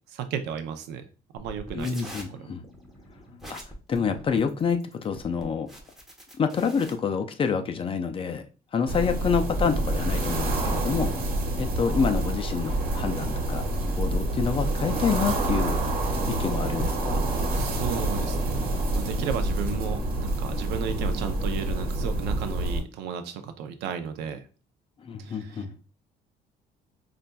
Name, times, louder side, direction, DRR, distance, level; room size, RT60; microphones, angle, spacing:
voice 1, 0.1-1.1 1.3-2.5 17.5-24.5 25.2-25.6, right 7 dB, 90° right, 8 dB, 0.6 m, -34 dB
sound 1, 1.4-6.9, equal, ahead, 1.0 m, -45 dB
voice 2, 1.7-2.6 3.5-3.6 3.9-5.7 6.4-8.4 8.7-11.1 11.5-13.6 14.0-15.8 16.3-17.2 25.0-25.7, left 6 dB, 30° left, 7 dB, 0.5 m, -27 dB
wind medium blustery whips through grass stalks, 8.9-22.8, right 1 dB, 60° right, 1.2 m, -27 dB
5.3 x 2.5 x 2.2 m, 0.35 s
cardioid pair, 110°, 17 cm